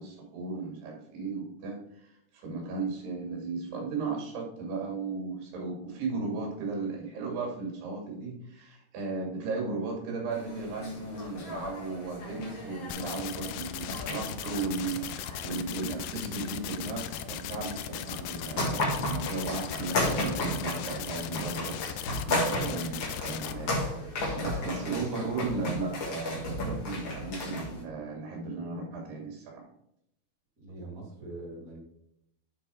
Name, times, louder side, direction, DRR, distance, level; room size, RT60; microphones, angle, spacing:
voice 1, 0.0-29.7, right 3 dB, 75° right, -1 dB, 4.4 m, -36 dB
sound 1, 10.3-27.8, left 1 dB, 55° left, 1.4 m, -35 dB
sound 2, 12.9-23.5, left 11 dB, 90° left, 2.7 m, -38 dB
voice 2, 30.6-31.8, right 2 dB, 45° right, 0 dB, 1.0 m, -43 dB
9.2 x 4.2 x 4.7 m, 0.78 s
omnidirectional pair, 4.8 m